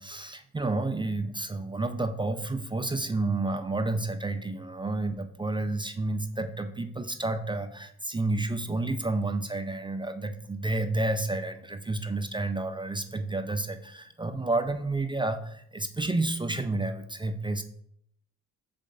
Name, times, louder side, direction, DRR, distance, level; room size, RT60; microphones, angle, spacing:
voice 1, 0.0-17.6, right 2 dB, 15° right, 8 dB, 0.3 m, -30 dB
4.0 x 3.3 x 3.8 m, 0.69 s
supercardioid pair, 70°, 35 cm